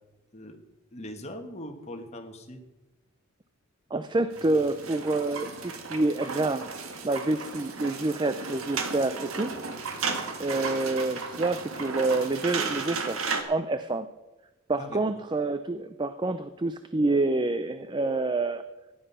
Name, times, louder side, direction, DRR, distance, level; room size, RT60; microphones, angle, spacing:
voice 1, 0.9-2.6 14.8-15.0, left 1 dB, 30° left, 5 dB, 1.5 m, -40 dB
voice 2, 3.9-6.7 7.0-9.6 10.4-13.2 13.5-14.1 14.7-18.6, right 2 dB, 20° right, 11 dB, 0.4 m, -27 dB
sound 1, 4.3-13.4, right 4 dB, 85° right, 1.7 m, -34 dB
15.0 x 10.0 x 5.5 m, 1.1 s
head